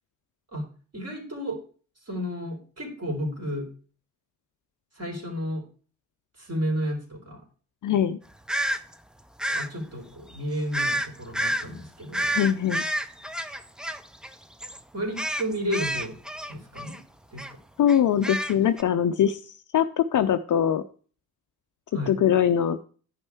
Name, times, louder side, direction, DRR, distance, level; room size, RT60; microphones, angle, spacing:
voice 1, 0.9-1.6 2.1-3.7 5.0-5.6 6.4-7.4 9.5-12.3 14.9-16.2 16.5-17.0 17.3-17.5 21.9-22.1, equal, 35° right, 1 dB, 3.5 m, -32 dB
voice 2, 7.8-8.2 12.3-12.8 17.8-19.4 19.7-20.8 22.1-22.8, left 9 dB, 45° left, 10 dB, 0.6 m, -22 dB
sound 1, 8.5-8.8 9.4-9.7 10.7-11.1 11.3-11.7 12.1-14.3 14.6-14.8 15.2-17.0 17.4-17.5 17.9-18.8, right 1 dB, ahead, 0.5 m, -29 dB
10.0 x 5.4 x 4.6 m, 0.40 s
hypercardioid pair, 45°, 44 cm